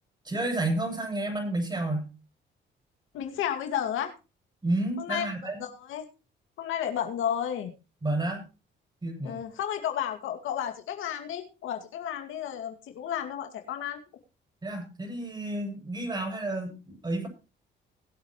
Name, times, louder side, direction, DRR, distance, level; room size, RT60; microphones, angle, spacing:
voice 1, 0.2-2.1 4.6-5.6 8.0-8.4 9.0-9.4 14.6-17.3, right 2 dB, 20° right, 3 dB, 7.1 m, -30 dB
voice 2, 3.1-4.1 5.0-5.3 5.6-6.0 6.6-7.7 9.2-14.0, left 9 dB, 85° left, 6 dB, 2.3 m, -32 dB
20.5 x 7.9 x 3.1 m, 0.32 s
cardioid pair, 90°, 20 cm